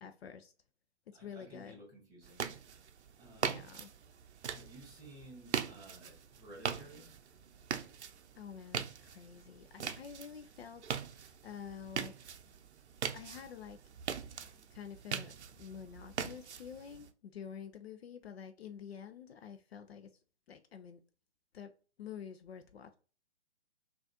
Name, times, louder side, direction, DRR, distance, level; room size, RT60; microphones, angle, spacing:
voice 1, 0.0-0.5 1.1-1.8 3.4-3.9 8.4-12.1 13.1-13.8 14.7-20.1 20.5-21.0 21.5-21.7 22.0-22.9, left 7 dB, 60° left, 0.5 m, -48 dB
voice 2, 1.1-2.4 3.2-3.7 4.5-7.1, right 1 dB, 10° right, 1.5 m, -54 dB
sound 1, 2.2-17.1, right 7 dB, 70° right, 0.5 m, -42 dB
3.9 x 2.4 x 2.6 m
figure-of-eight pair, 130°, 34 cm